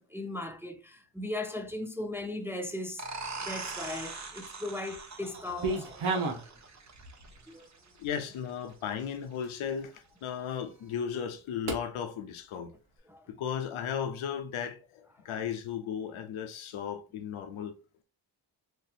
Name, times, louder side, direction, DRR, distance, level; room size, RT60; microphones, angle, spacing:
voice 1, 0.0-3.1 3.4-6.5 7.5-7.7 13.1-13.2, left 2 dB, 5° right, 0.5 m, -38 dB
sound 1, 3.0-8.4, right 4 dB, 35° right, 0.8 m, -42 dB
sound 2, 3.1-3.8 4.4-5.0 5.3-6.5 6.9-7.4 8.0-8.1 8.7-8.8 9.4-9.5 11.6-11.8, right 3 dB, 85° right, 1.1 m, -33 dB
voice 2, 8.0-12.7 13.3-17.7, left 8 dB, 90° left, 0.7 m, -35 dB
4.3 x 2.8 x 2.4 m
cardioid pair, 70°, 47 cm